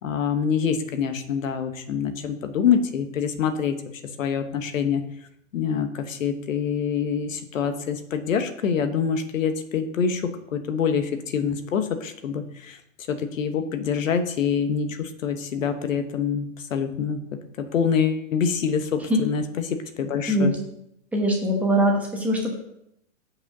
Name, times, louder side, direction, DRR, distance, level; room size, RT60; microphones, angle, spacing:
voice 1, 0.0-3.8 4.2-5.0 5.5-12.8 13.1-20.5, left 7 dB, 75° left, 8 dB, 1.2 m, -26 dB
voice 2, 21.1-22.5, equal, 5° right, -2 dB, 1.1 m, -22 dB
7.1 x 5.5 x 6.1 m, 0.77 s
hypercardioid pair, 160°, 40 cm